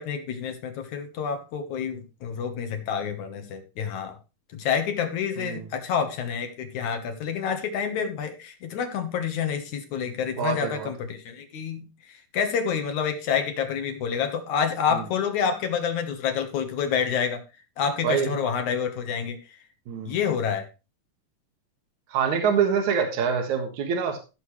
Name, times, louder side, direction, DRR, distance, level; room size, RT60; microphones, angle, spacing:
voice 1, 0.0-4.2 4.5-17.4 17.8-19.6 20.1-20.7, left 7 dB, 65° left, 6 dB, 2.6 m, -28 dB
voice 2, 5.4-5.7 10.4-10.9 14.9-15.0 18.0-18.3 19.9-20.2 22.1-24.2, right 7 dB, 65° right, 4 dB, 2.9 m, -25 dB
17.0 x 6.7 x 3.2 m, 0.30 s
omnidirectional pair, 3.7 m